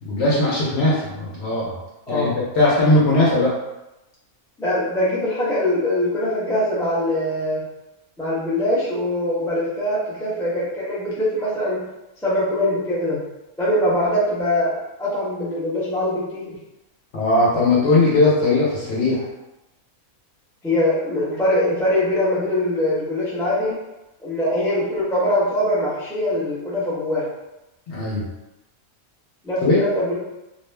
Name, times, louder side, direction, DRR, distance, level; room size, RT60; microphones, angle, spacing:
voice 1, 0.0-1.7 2.1-3.5 17.1-19.2 27.9-28.2 29.6-29.8, left 2 dB, 60° left, -5 dB, 0.9 m, -19 dB
voice 2, 4.6-7.6 8.2-11.8 12.2-13.2 13.6-16.6 20.6-23.8 24.2-27.2 29.4-30.2, left 1 dB, 5° left, -9 dB, 0.4 m, -22 dB
2.4 x 2.2 x 3.1 m, 0.96 s
omnidirectional pair, 1.5 m